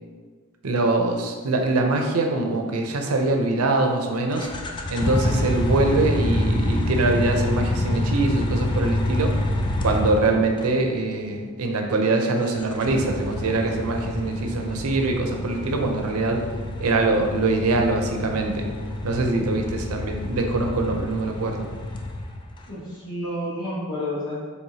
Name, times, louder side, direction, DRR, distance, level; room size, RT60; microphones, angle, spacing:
voice 1, 0.6-4.5 4.9-9.3 9.8-16.4 16.8-18.7 19.0-21.7, right 2 dB, 90° right, 3 dB, 0.6 m, -23 dB
sound 1, 4.3-10.7 12.5-22.6, left 1 dB, 20° left, 0.3 m, -27 dB
voice 2, 22.7-24.4, left 1 dB, 75° left, -9 dB, 1.2 m, -30 dB
4.7 x 3.4 x 2.7 m, 1.5 s
head